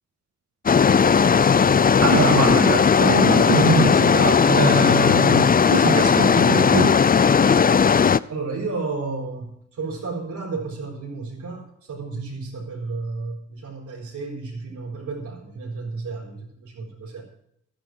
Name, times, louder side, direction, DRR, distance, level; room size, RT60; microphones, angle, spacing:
sound 1, 0.7-8.2, left 6 dB, 30° left, 0.5 m, -17 dB
voice 1, 2.0-7.0, right 4 dB, 55° right, 1 dB, 1.9 m, -23 dB
voice 2, 8.3-17.2, right 3 dB, 90° right, -3 dB, 4.2 m, -32 dB
12.5 x 10.0 x 6.1 m, 0.73 s
supercardioid pair, 50°, 29 cm